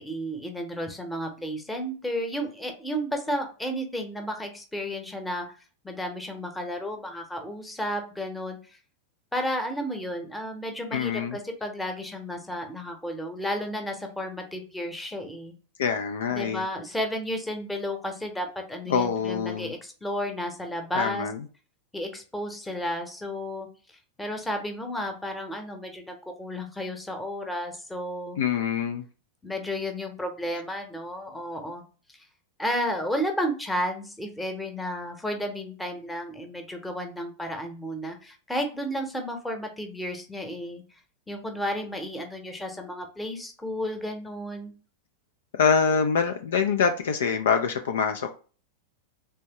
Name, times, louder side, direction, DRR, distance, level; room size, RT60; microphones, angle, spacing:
voice 1, 0.0-5.5 5.8-8.6 9.3-15.5 16.3-21.3 21.9-23.7 24.2-28.4 29.4-31.8 32.6-40.8 41.3-44.7, equal, 5° left, 0.9 m, -32 dB
voice 2, 10.9-11.4 15.8-16.6 18.9-19.7 20.9-21.4 28.4-29.0 45.5-48.3, left 6 dB, 60° left, 0.4 m, -25 dB
3.5 x 3.3 x 2.9 m
figure-of-eight pair, 90°, 0 cm